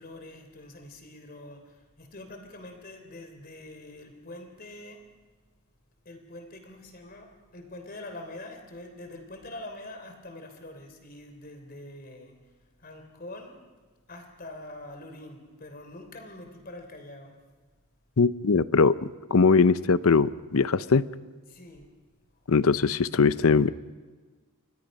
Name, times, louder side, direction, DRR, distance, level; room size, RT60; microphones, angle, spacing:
voice 1, 0.0-5.0 6.0-12.4 12.8-13.6 14.1-17.4 21.5-21.9, left 1 dB, 40° left, 6 dB, 3.4 m, -44 dB
voice 2, 18.2-21.0 22.5-23.7, left 4 dB, 70° left, 16 dB, 0.7 m, -21 dB
29.5 x 24.5 x 5.4 m, 1.4 s
head